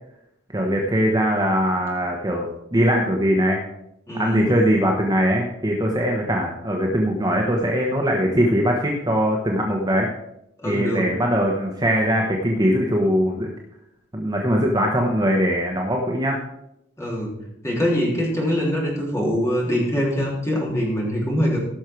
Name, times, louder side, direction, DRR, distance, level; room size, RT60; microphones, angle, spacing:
voice 1, 0.5-3.6 4.1-10.1 10.6-13.5 14.1-16.4, equal, 20° right, 0 dB, 1.0 m, -21 dB
voice 2, 4.1-4.4 10.6-11.1 17.0-17.3 17.6-21.6, equal, 15° left, -3 dB, 3.4 m, -23 dB
16.5 x 6.4 x 4.6 m, 0.84 s
head